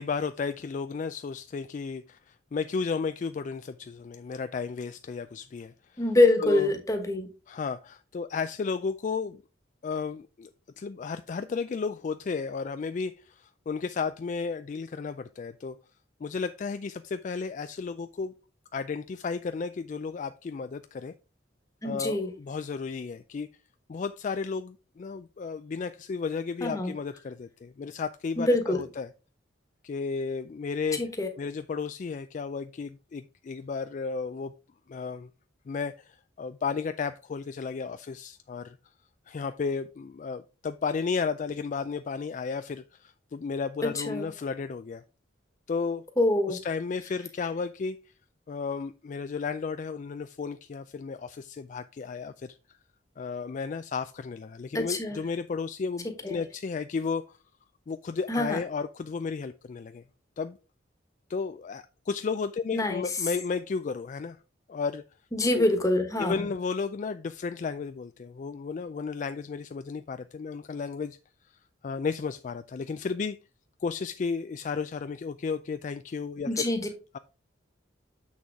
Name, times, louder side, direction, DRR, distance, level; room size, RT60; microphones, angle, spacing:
voice 1, 0.0-6.0 6.4-6.7 7.5-9.4 9.8-10.5 10.8-15.8 16.2-18.3 18.7-21.1 21.8-23.5 23.9-29.1 29.8-31.0 31.4-34.5 34.9-35.3 35.7-38.8 39.3-45.0 45.7-46.0 46.5-48.0 48.5-52.6 53.2-57.4 57.9-60.0 60.4-60.6 61.3-64.4 64.7-65.0 65.5-65.6 66.2-71.2 71.8-73.4 73.8-76.7 77.1-77.2, left 5 dB, 40° left, 0.3 m, -33 dB
voice 2, 6.0-7.3 21.8-22.3 26.6-26.9 28.4-28.8 31.0-31.3 43.8-44.3 46.2-46.6 54.7-55.2 56.2-56.4 58.3-58.6 62.7-63.0 65.3-66.3 76.5-76.9, left 2 dB, 15° left, 1.3 m, -25 dB
7.2 x 6.3 x 3.5 m
head